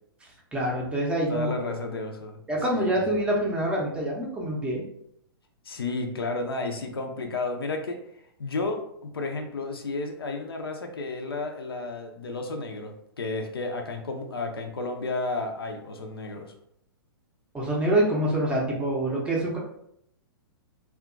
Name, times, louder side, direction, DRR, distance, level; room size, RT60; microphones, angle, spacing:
voice 1, 0.5-1.5 2.5-4.8 17.5-19.6, right 1 dB, 10° right, -3 dB, 0.5 m, -26 dB
voice 2, 1.3-2.4 2.7-2.9 5.7-8.0 8.4-8.8 9.1-16.5, left 3 dB, 75° left, 4 dB, 0.5 m, -32 dB
2.8 x 2.3 x 2.4 m, 0.73 s
figure-of-eight pair, 115°, 13 cm